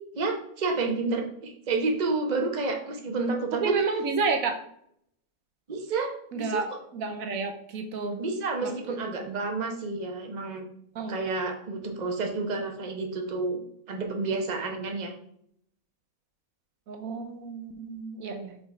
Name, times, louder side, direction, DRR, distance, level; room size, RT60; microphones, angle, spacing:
voice 1, 0.1-3.7 5.7-6.6 8.2-10.6 11.1-13.6 13.9-15.1, right 3 dB, 35° right, 3 dB, 1.0 m, -30 dB
voice 2, 3.5-4.6 6.3-6.7 6.9-8.2 8.6-8.7 9.2-9.4 11.0-11.2 16.9-18.6, right 4 dB, 75° right, 5 dB, 1.1 m, -30 dB
5.6 x 4.2 x 4.5 m, 0.70 s
omnidirectional pair, 1.5 m